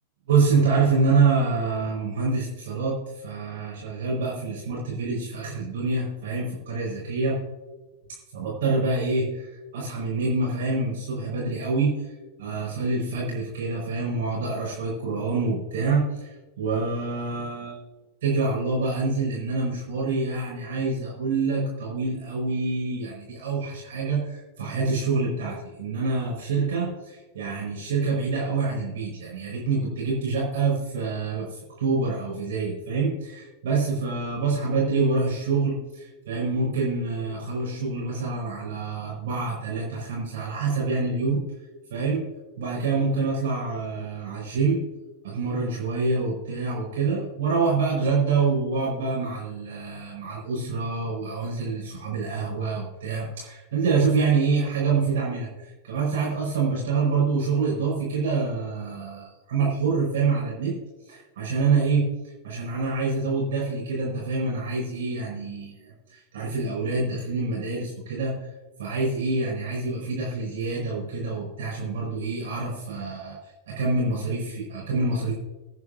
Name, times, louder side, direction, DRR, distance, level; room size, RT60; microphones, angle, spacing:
voice 1, 0.3-7.4 8.3-11.9 12.4-17.8 18.2-41.4 41.9-42.2 42.6-44.8 45.2-60.7 61.1-62.1 62.4-68.5 68.8-73.4 73.7-75.3, right 4 dB, 60° right, -4 dB, 4.7 m, -26 dB
22.0 x 9.6 x 2.6 m, 1.2 s
figure-of-eight pair, 90°, 0 cm